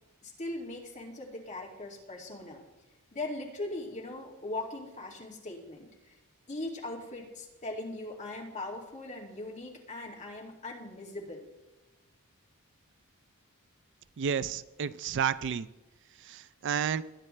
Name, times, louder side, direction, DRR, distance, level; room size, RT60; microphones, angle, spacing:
voice 1, 0.2-2.6 3.1-6.2 6.5-11.4, left 2 dB, 35° left, -2 dB, 2.3 m, -40 dB
voice 2, 14.2-15.7 16.2-17.0, right 7 dB, 55° right, 16 dB, 0.4 m, -31 dB
21.0 x 9.5 x 3.2 m, 1.1 s
head